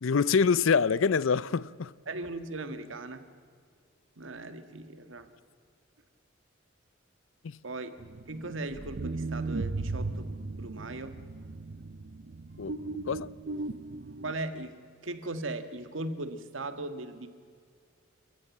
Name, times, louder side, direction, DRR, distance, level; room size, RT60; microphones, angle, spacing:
voice 1, 0.0-1.9 7.4-7.6 12.6-13.3, left 5 dB, 90° left, 0.5 m, -26 dB
voice 2, 2.1-3.2 4.2-5.3 7.6-7.9 8.3-11.2 14.2-14.8 15.0-17.3, right 2 dB, 85° right, 1.7 m, -38 dB
sound 1, 8.0-14.3, right 3 dB, 55° right, 0.6 m, -37 dB
30.0 x 14.5 x 7.3 m
head